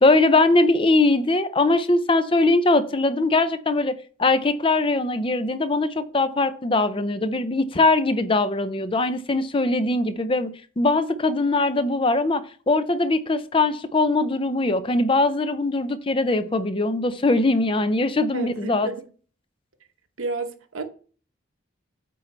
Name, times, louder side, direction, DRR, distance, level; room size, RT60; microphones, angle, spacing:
voice 1, 0.0-10.5 10.8-18.9, left 2 dB, 25° left, 0.5 m, -21 dB
voice 2, 18.3-19.0 20.2-20.8, right 3 dB, 90° right, 1.0 m, -31 dB
8.4 x 3.9 x 4.3 m
head